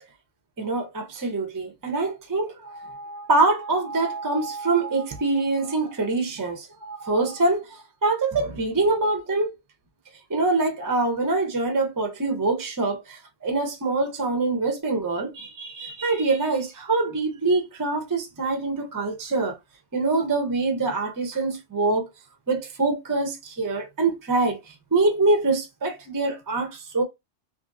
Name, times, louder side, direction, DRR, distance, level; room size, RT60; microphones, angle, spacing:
voice 1, 0.6-9.5 10.3-19.6 19.9-22.0 22.5-24.6 24.9-27.0, right 3 dB, 25° right, 0.4 m, -24 dB
2.9 x 2.4 x 2.5 m
omnidirectional pair, 1.3 m